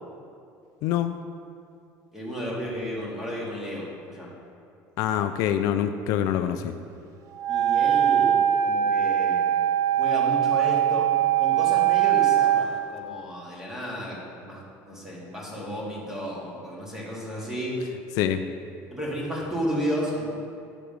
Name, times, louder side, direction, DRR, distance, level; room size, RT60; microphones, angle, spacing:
voice 1, 0.8-1.2 5.0-6.8 18.2-18.4, left 10 dB, 65° left, 9 dB, 0.4 m, -25 dB
voice 2, 2.1-4.3 6.4-6.5 7.5-9.5 9.9-11.1 11.4-17.8 18.9-20.3, equal, 5° right, -5 dB, 2.0 m, -33 dB
Wind instrument woodwind instrument, 7.4-12.7, right 10 dB, 55° right, 0.4 m, -21 dB
8.8 x 4.9 x 5.2 m, 2.5 s
cardioid pair, 130°, 6 cm